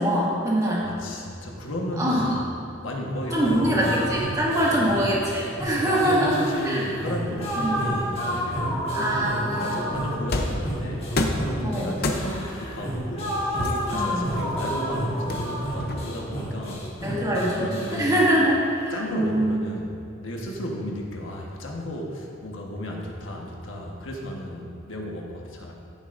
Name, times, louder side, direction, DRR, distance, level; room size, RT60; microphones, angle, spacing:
voice 1, 0.0-0.9 2.0-2.4 3.3-6.8 7.6-7.7 8.9-9.8 11.6-12.0 13.9-14.3 17.0-17.7 18.0-18.6 18.8-19.5, right 1 dB, 20° right, -7 dB, 2.0 m, -23 dB
voice 2, 0.8-2.4 2.8-4.0 4.7-4.9 5.8-11.1 11.6-13.3 13.8-16.9 17.3-18.4 18.9-25.7, equal, 80° left, -1 dB, 1.4 m, -33 dB
sound 1, 3.3-19.0, equal, 30° left, 1.6 m, -31 dB
sound 2, 10.3-10.7 11.2-11.5 12.0-12.5 13.6-14.7 15.3-16.3, left 2 dB, 50° left, 0.7 m, -28 dB
14.5 x 7.5 x 2.6 m, 2.5 s
head